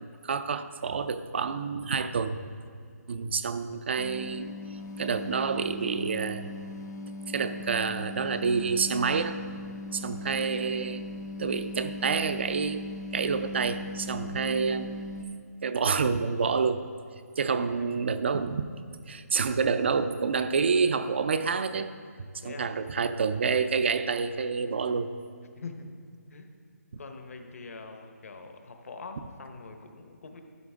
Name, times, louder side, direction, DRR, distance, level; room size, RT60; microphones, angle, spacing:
voice 1, 0.0-2.4 3.1-4.5 5.0-6.5 7.3-9.4 9.9-11.0 11.4-12.8 13.1-15.0 15.6-16.8 17.4-18.8 19.1-21.9 22.2-25.1, right 5 dB, 40° right, 11 dB, 0.5 m, -28 dB
sound 1, 4.0-15.2, left 2 dB, 90° left, 1.1 m, -39 dB
voice 2, 17.5-17.9 22.4-22.7 25.6-25.9 26.3-26.5 27.0-30.4, left 4 dB, 55° left, 5 dB, 1.2 m, -43 dB
12.5 x 9.6 x 3.6 m, 2.2 s
hypercardioid pair, 170°, 9 cm